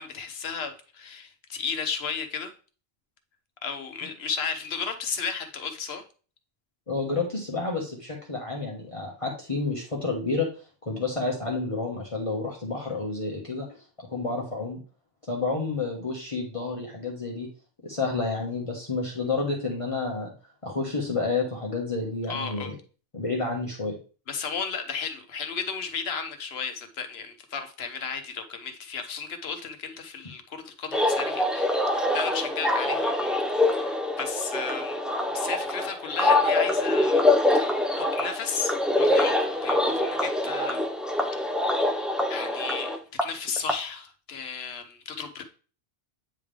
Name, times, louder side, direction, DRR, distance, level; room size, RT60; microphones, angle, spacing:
voice 1, 0.0-2.5 3.6-6.0 22.3-22.7 24.3-35.0 35.3-37.2 37.5-40.8 41.1-41.4 42.3-45.4, left 5 dB, 75° left, 7 dB, 1.1 m, -34 dB
voice 2, 6.9-10.5 10.9-13.8 14.1-14.8 15.2-17.5 17.8-20.3 20.6-22.7 23.1-24.0, left 3 dB, 30° left, -2 dB, 1.2 m, -30 dB
sound 1, 30.9-43.7, left 1 dB, ahead, 0.4 m, -25 dB
8.8 x 3.6 x 3.3 m, 0.37 s
omnidirectional pair, 1.1 m